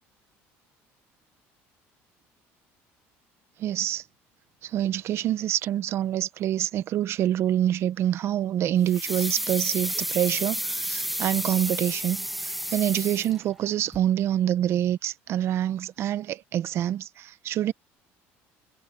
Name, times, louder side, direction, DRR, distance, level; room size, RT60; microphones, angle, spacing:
voice 1, 3.6-4.0 4.6-17.7, right 11 dB, 50° right, 1.0 m, -26 dB
sound 1, 8.9-13.7 13.9-14.0, equal, ahead, 1.4 m, -31 dB
cardioid pair, 125°, 5 cm